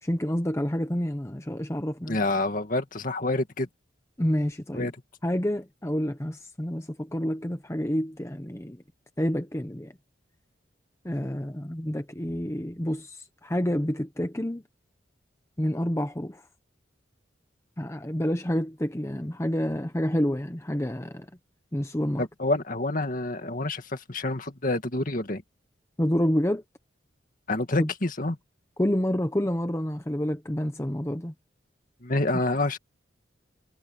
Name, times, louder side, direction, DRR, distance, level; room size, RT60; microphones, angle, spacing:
voice 1, 0.0-2.2 4.2-4.9 5.2-8.8 9.2-9.9 11.0-14.6 15.6-16.4 17.8-21.3 21.7-22.2 26.0-26.6 27.8-27.9 28.8-31.3, equal, 15° left, 0.9 m, -28 dB
voice 2, 2.1-3.7 4.7-4.9 22.2-25.4 27.5-28.4 32.0-32.8, left 2 dB, 45° left, 2.1 m, -27 dB
head